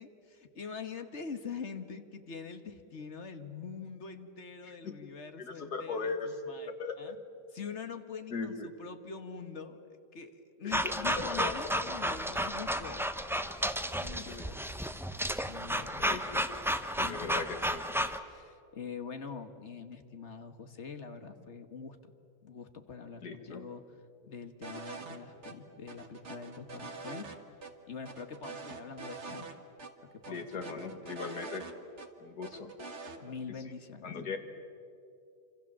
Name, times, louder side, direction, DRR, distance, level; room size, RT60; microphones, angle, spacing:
voice 1, 0.0-7.1 7.5-13.7 13.9-14.7 15.5-16.1 17.0-17.4 18.3-22.1 22.4-23.8 24.2-27.3 27.9-29.5 30.1-31.1 33.2-34.1, left 5 dB, 45° left, 8 dB, 1.6 m, -44 dB
voice 2, 5.4-6.3 6.7-7.1 8.3-8.7 10.6-11.5 16.0-16.5 17.0-17.8 23.2-23.6 30.3-31.7 32.2-32.7 34.0-34.4, left 4 dB, 70° left, 6 dB, 2.4 m, -39 dB
sound 1, 10.7-18.2, equal, 5° right, 0.5 m, -33 dB
sound 2, 24.6-25.2 25.4-25.5 25.9-27.4 27.6-27.7 28.1-29.5 29.8-29.9 30.2-32.1 32.4-33.2, right 4 dB, 45° right, 1.8 m, -44 dB
28.0 x 26.0 x 7.5 m, 2.6 s
omnidirectional pair, 1.8 m